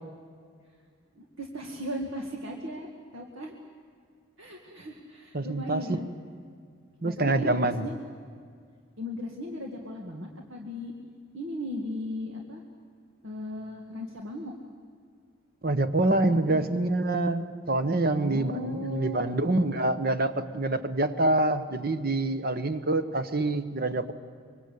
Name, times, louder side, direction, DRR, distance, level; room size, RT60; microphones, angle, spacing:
voice 1, 1.2-3.5 4.4-6.1 7.0-8.0 9.0-10.9 11.3-12.6 13.2-14.5 16.3-16.7 18.0-19.3, equal, 70° right, 1 dB, 2.1 m, -37 dB
voice 2, 5.3-6.0 7.0-7.9 15.6-17.4 17.7-24.1, right 2 dB, 45° right, 11 dB, 1.2 m, -26 dB
25.0 x 23.5 x 8.6 m, 2.1 s
head